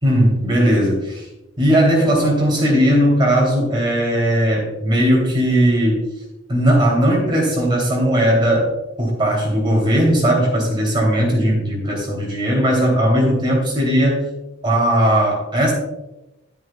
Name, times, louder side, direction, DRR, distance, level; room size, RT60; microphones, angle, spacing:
voice 1, 0.0-1.1 1.6-6.0 6.5-8.7 9.0-14.2 14.6-15.7, equal, 25° right, -2 dB, 2.9 m, -17 dB
11.0 x 10.0 x 2.3 m, 0.96 s
head